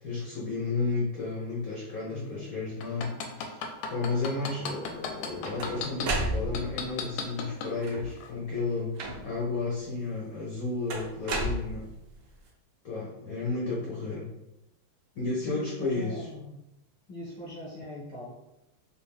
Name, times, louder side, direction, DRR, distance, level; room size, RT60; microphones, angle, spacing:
voice 1, 0.0-9.0 9.2-11.9 12.8-14.3 15.2-16.3, left 3 dB, 65° left, -4 dB, 0.9 m, -32 dB
voice 2, 2.1-2.5 15.4-16.6 17.1-18.3, left 1 dB, 15° right, -8 dB, 1.0 m, -41 dB
sound 1, 2.8-6.1 6.5-7.7 8.2-8.3, left 6 dB, 85° left, 1.4 m, -33 dB
sound 2, 5.0-6.9 7.7-8.3 9.0-9.5 10.9-12.2, right 2 dB, 85° right, 0.8 m, -33 dB
3.5 x 2.4 x 3.4 m, 0.88 s
omnidirectional pair, 2.3 m